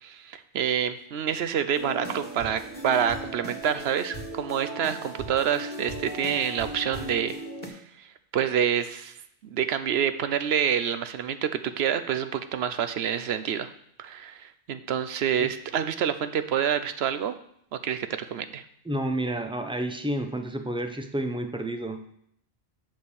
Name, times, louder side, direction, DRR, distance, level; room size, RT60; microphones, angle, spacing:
voice 1, 0.0-7.3 7.7-7.8 8.3-9.1 9.5-13.7 14.0-17.3 17.8-18.6, right 8 dB, 65° right, 11 dB, 0.8 m, -27 dB
sound 1, 1.7-7.7, right 1 dB, 40° left, 2.4 m, -37 dB
voice 2, 18.8-22.1, right 1 dB, 10° right, 6 dB, 0.3 m, -30 dB
7.4 x 4.9 x 7.0 m, 0.71 s
omnidirectional pair, 1.2 m